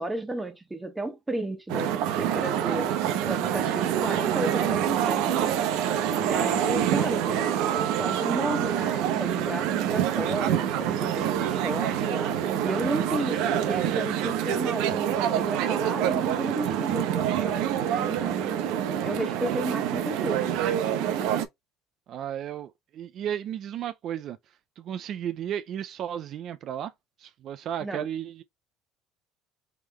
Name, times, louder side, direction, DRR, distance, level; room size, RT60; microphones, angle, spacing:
voice 1, 0.0-5.6 6.2-18.6 19.0-20.6 27.8-28.1, right 1 dB, 10° right, 0.9 m, -33 dB
sound 1, 1.7-21.5, right 10 dB, 75° right, 0.8 m, -26 dB
voice 2, 22.1-24.4 24.8-26.9 27.2-28.4, right 10 dB, 50° right, 0.5 m, -34 dB
3.7 x 3.3 x 3.0 m
supercardioid pair, 115°, 0 cm